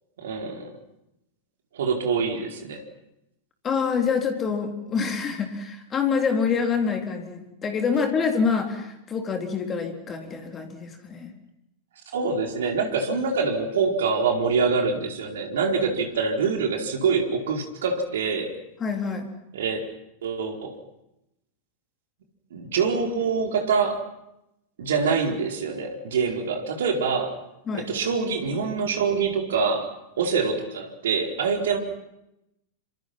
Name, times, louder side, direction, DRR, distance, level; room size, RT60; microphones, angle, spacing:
voice 1, 0.2-0.7 1.7-2.8 12.1-18.5 19.5-19.9 20.2-20.8 22.5-24.0 24.8-27.4 27.7-29.9 30.2-31.8, right 5 dB, 60° right, 4 dB, 4.5 m, -25 dB
voice 2, 3.6-11.3 18.8-19.3 27.7-27.9, left 5 dB, 25° left, 5 dB, 3.8 m, -26 dB
27.5 x 26.5 x 6.0 m, 0.86 s
figure-of-eight pair, 90°, 0 cm